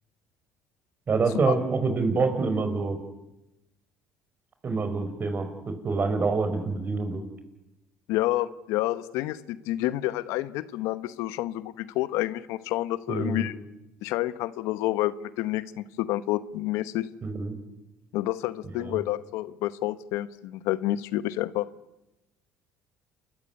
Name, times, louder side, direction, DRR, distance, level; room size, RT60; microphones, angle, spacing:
voice 1, 1.1-3.0 4.6-7.2 13.1-13.4 17.2-17.6 18.8-19.0, right 4 dB, 40° right, 8 dB, 5.3 m, -26 dB
voice 2, 8.1-13.5 14.0-17.1 18.1-21.7, left 15 dB, 75° left, 15 dB, 1.0 m, -29 dB
29.0 x 14.5 x 9.7 m, 0.95 s
supercardioid pair, 75°, 5 cm